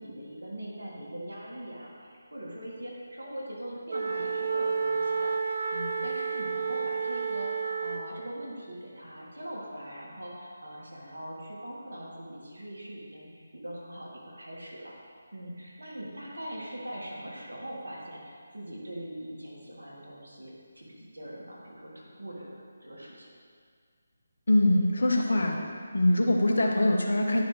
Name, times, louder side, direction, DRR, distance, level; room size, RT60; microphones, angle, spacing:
voice 1, 0.0-14.1 14.4-14.9 15.3-22.5 22.8-23.3, right 1 dB, 75° right, -4 dB, 1.9 m, -42 dB
Wind instrument woodwind instrument, 3.9-8.3, right 5 dB, 50° right, 0.5 m, -30 dB
voice 2, 24.5-25.6 25.9-27.4, left 1 dB, 60° left, 0 dB, 1.1 m, -23 dB
10.5 x 5.5 x 3.3 m, 2.1 s
figure-of-eight pair, 150°, 0 cm